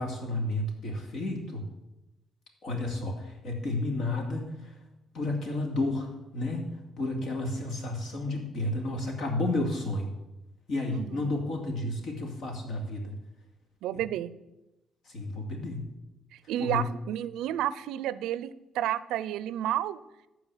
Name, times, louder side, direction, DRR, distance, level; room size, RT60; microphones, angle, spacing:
voice 1, 0.0-1.6 2.6-4.8 5.1-10.1 10.7-13.1 15.0-15.9 16.6-16.9, left 2 dB, 75° left, 2 dB, 2.7 m, -31 dB
voice 2, 10.9-11.3 13.8-14.3 16.5-20.0, right 12 dB, 90° right, 17 dB, 0.5 m, -31 dB
13.5 x 4.7 x 7.3 m, 0.97 s
cardioid pair, 90°, 0 cm